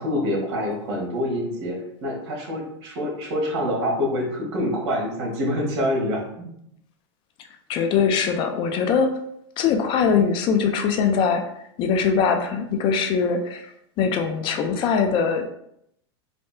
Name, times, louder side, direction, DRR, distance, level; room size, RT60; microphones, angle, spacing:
voice 1, 0.0-6.5, left 1 dB, 65° right, -1 dB, 1.4 m, -26 dB
voice 2, 7.7-9.1 9.6-11.4 11.8-13.7 14.0-15.5, left 6 dB, 35° left, 6 dB, 0.4 m, -22 dB
3.3 x 2.6 x 3.2 m, 0.74 s
supercardioid pair, 140°, 15 cm